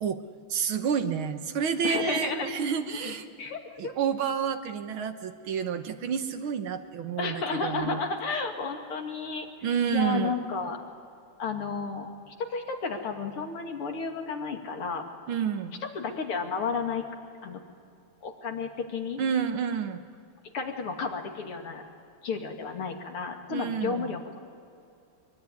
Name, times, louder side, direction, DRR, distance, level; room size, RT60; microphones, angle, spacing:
voice 1, 0.5-3.3 3.8-8.0 9.6-10.3 15.3-15.8 19.2-20.0 23.5-24.1, right 7 dB, 70° right, 8 dB, 2.0 m, -29 dB
voice 2, 1.8-2.5 3.0-3.9 7.2-9.5 9.9-10.8 11.4-15.1 15.9-17.1 17.4-17.6 18.2-19.2 20.5-21.8 22.2-24.4, left 4 dB, 85° left, 3 dB, 3.1 m, -32 dB
24.0 x 22.5 x 9.7 m, 2.5 s
omnidirectional pair, 2.4 m